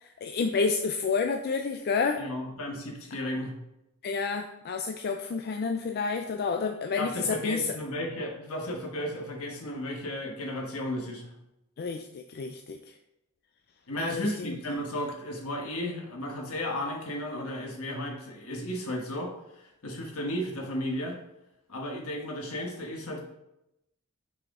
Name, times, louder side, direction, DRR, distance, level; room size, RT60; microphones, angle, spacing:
voice 1, 0.0-2.2 4.0-7.8 11.8-12.8 14.0-14.6, left 5 dB, 45° left, 5 dB, 0.4 m, -30 dB
voice 2, 2.2-3.5 7.0-11.3 13.9-21.2 21.7-23.2, left 1 dB, 70° left, 1 dB, 1.3 m, -34 dB
6.2 x 4.9 x 3.7 m, 0.87 s
head